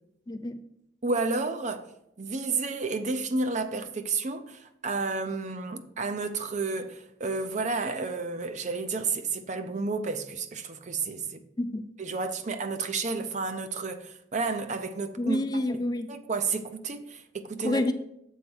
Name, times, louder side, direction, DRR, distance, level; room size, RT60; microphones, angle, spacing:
voice 1, 0.3-0.6 11.6-11.9 15.2-16.1 17.6-17.9, left 1 dB, 20° left, 0.3 m, -28 dB
voice 2, 1.0-1.8 2.2-11.4 12.0-15.4 16.1-17.8, right 4 dB, 40° right, 0.6 m, -31 dB
7.2 x 4.4 x 6.1 m
head